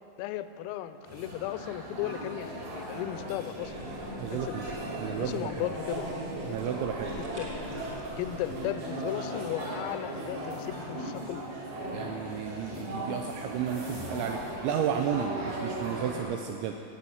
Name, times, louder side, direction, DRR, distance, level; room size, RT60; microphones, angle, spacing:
voice 1, 0.2-3.7 4.3-4.8 5.2-6.0 7.4-7.5 8.2-11.4, left 13 dB, 85° left, 11 dB, 3.2 m, -35 dB
sound 1, 1.1-16.2, right 1 dB, 55° right, 4.7 m, -37 dB
sound 2, 3.6-8.7, equal, 35° right, 1.9 m, -49 dB
voice 2, 4.2-4.7 5.0-5.6 6.4-7.2 11.9-16.7, right 8 dB, 85° right, 4 dB, 2.6 m, -33 dB
15.0 x 8.7 x 7.9 m, 2.6 s
omnidirectional pair, 6.0 m